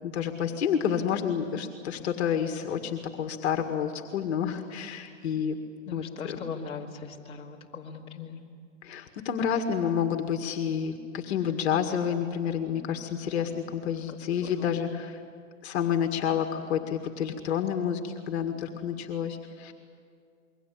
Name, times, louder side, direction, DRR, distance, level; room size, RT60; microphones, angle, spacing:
voice 1, 0.0-5.6 5.9-6.4 8.8-15.2 15.6-19.7, left 8 dB, 50° left, 5 dB, 2.0 m, -29 dB
voice 2, 5.9-8.4 14.1-14.8, left 6 dB, 15° left, -5 dB, 3.1 m, -40 dB
28.0 x 23.0 x 8.7 m, 2.3 s
hypercardioid pair, 145°, 40 cm